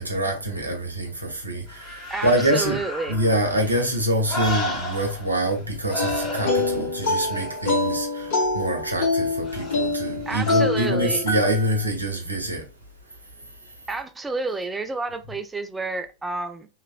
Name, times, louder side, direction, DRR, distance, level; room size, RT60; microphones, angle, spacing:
voice 1, 0.0-2.8 3.1-12.6, right 1 dB, 85° right, 0.8 m, -25 dB
sound 1, 1.7-5.6 5.9-8.4 9.4-10.9 11.4-11.5, left 1 dB, 20° left, 1.5 m, -34 dB
voice 2, 2.1-3.2 10.3-11.2 13.9-16.7, right 3 dB, 10° right, 0.3 m, -30 dB
sound 2, 6.0-11.8, left 2 dB, 55° left, 1.5 m, -25 dB
2.9 x 2.4 x 2.4 m
figure-of-eight pair, 90°, 0 cm